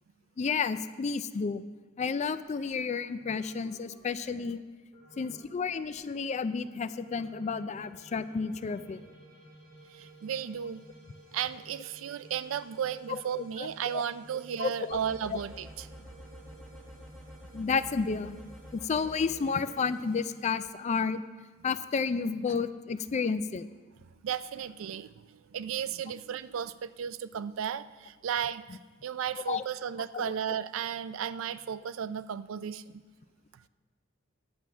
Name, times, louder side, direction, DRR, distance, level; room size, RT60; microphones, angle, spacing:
voice 1, 0.4-1.6 2.0-4.6 5.2-9.0 13.1-13.2 13.6-14.0 14.6-15.0 15.3-15.4 17.5-18.4 18.7-21.2 21.6-23.7 29.5-29.6 30.1-30.3, left 5 dB, 35° left, 13 dB, 0.3 m, -31 dB
sound 1, 2.2-2.8 3.2-4.4 4.9-6.1 7.0-20.5, right 2 dB, 45° right, 3.2 m, -54 dB
voice 2, 9.9-10.8 11.3-15.7 24.2-33.0, right 8 dB, 75° right, 15 dB, 0.4 m, -34 dB
sound 2, 14.9-19.3, equal, ahead, 1.1 m, -49 dB
10.5 x 7.1 x 6.0 m, 1.4 s
head